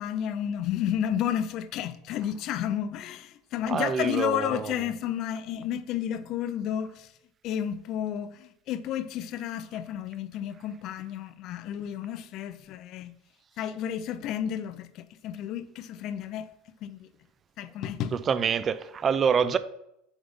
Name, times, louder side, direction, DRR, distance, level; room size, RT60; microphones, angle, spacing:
voice 1, 0.0-7.1 7.4-13.2 13.6-16.5 16.8-17.1 17.6-18.2, left 10 dB, 55° left, 0.5 m, -32 dB
voice 2, 3.7-4.7 18.3-19.6, right 7 dB, 30° right, 0.4 m, -26 dB
7.1 x 3.5 x 5.2 m
supercardioid pair, 110°, 0 cm